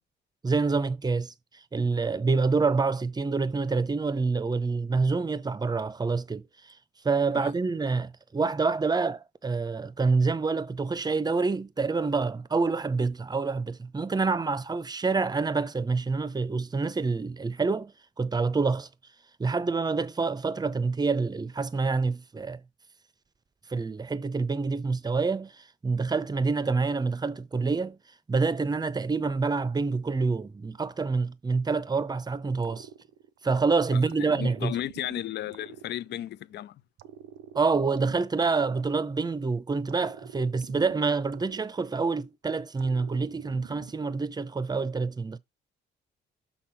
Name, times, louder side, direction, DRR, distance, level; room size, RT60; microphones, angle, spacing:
voice 1, 0.4-1.3 1.7-6.8 7.0-17.9 18.2-18.9 19.4-22.6 23.7-28.0 28.3-32.9 33.4-34.8 37.5-45.4, right 4 dB, 20° right, 0.6 m, -27 dB
sound 1, 32.6-33.6 34.1-36.5 37.0-39.4 39.9-42.3 42.8-44.3, right 10 dB, 85° right, 0.6 m, -48 dB
voice 2, 33.9-36.8, left 12 dB, 60° left, 0.4 m, -35 dB
6.1 x 4.2 x 5.7 m
cardioid pair, 90°, 20 cm